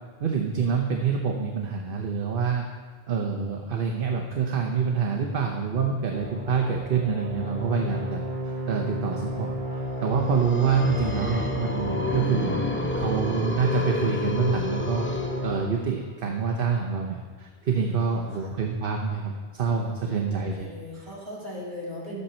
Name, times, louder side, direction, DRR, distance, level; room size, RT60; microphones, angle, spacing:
voice 1, 0.2-2.7 3.1-12.6 12.9-15.1 15.4-20.7, right 5 dB, 55° right, 1 dB, 1.0 m, -27 dB
sound 1, 6.1-15.5, equal, 30° left, 2.6 m, -32 dB
sound 2, 10.1-16.0, left 2 dB, 15° left, 0.4 m, -31 dB
voice 2, 17.6-18.5 19.7-22.2, equal, 25° right, -7 dB, 2.8 m, -40 dB
12.0 x 8.4 x 4.3 m, 1.4 s
omnidirectional pair, 1.1 m